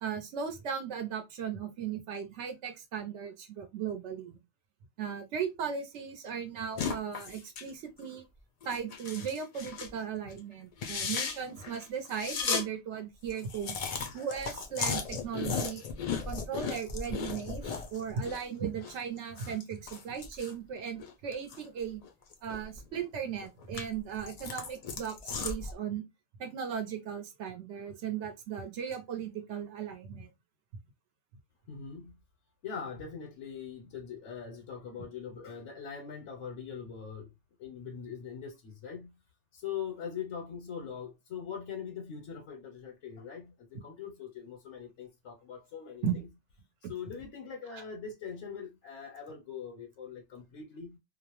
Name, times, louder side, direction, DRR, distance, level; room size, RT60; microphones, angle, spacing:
voice 1, 0.0-4.4 5.0-8.2 8.6-13.7 14.1-15.8 16.3-17.6 17.9-22.0 22.4-26.0 26.4-30.3 46.0-46.2 46.8-46.9 47.7-47.8, right 7 dB, 85° right, 0.9 m, -37 dB
sound 1, 6.8-7.7 8.0-8.2 8.6-10.0 10.3-10.4 10.7-12.6 13.0-13.1 13.3-18.4 18.7-21.7 22.0-23.0 23.4-25.7, left 5 dB, 65° left, 0.4 m, -36 dB
voice 2, 31.7-32.2 32.6-37.3 37.6-39.2 39.5-46.0 46.9-51.0, left 7 dB, 85° left, 1.0 m, -42 dB
2.4 x 2.0 x 2.8 m
omnidirectional pair, 1.2 m